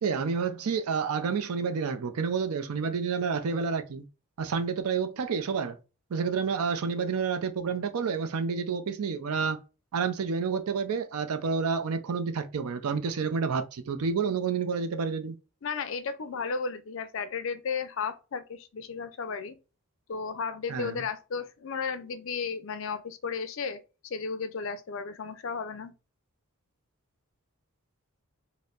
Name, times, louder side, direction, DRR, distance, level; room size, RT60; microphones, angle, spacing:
voice 1, 0.0-4.0 4.4-5.8 6.1-9.6 9.9-15.4 20.7-21.0, right 5 dB, 80° right, 0.5 m, -29 dB
voice 2, 15.6-19.6 20.1-25.9, left 5 dB, 60° left, 0.4 m, -34 dB
4.2 x 2.1 x 2.3 m
head